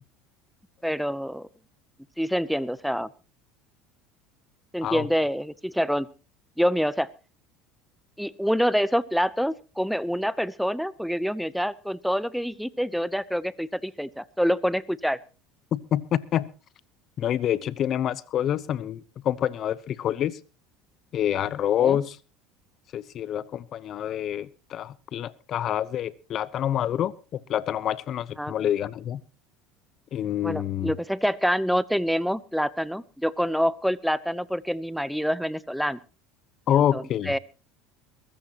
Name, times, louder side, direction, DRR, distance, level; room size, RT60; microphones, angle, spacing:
voice 1, 0.8-1.5 2.2-3.1 4.7-6.1 6.6-7.1 8.2-15.2 21.8-22.0 28.4-28.5 30.4-36.0 36.7-37.4, equal, ahead, 19 dB, 0.8 m, -26 dB
voice 2, 15.7-16.5 17.2-20.4 21.1-22.2 22.9-29.2 30.1-30.9 36.7-37.3, left 10 dB, 50° left, 20 dB, 0.9 m, -27 dB
22.5 x 14.0 x 2.9 m, 0.33 s
hypercardioid pair, 85°, 0 cm